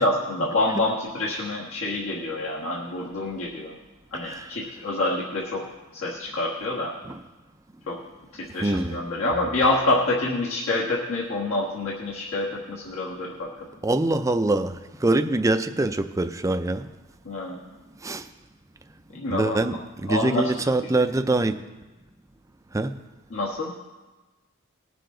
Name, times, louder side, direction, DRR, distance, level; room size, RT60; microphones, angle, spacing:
voice 1, 0.0-3.8 4.1-5.6 5.9-6.9 7.9-8.0 8.3-13.5 17.2-17.6 19.1-19.6 20.1-20.5 20.8-20.9 23.3-23.7, left 2 dB, 70° left, -5 dB, 1.4 m, -27 dB
voice 2, 8.6-9.0 13.8-16.9 18.0-18.3 19.3-21.6 22.7-23.0, right 2 dB, 15° right, 9 dB, 0.4 m, -24 dB
19.0 x 6.7 x 3.8 m, 1.2 s
head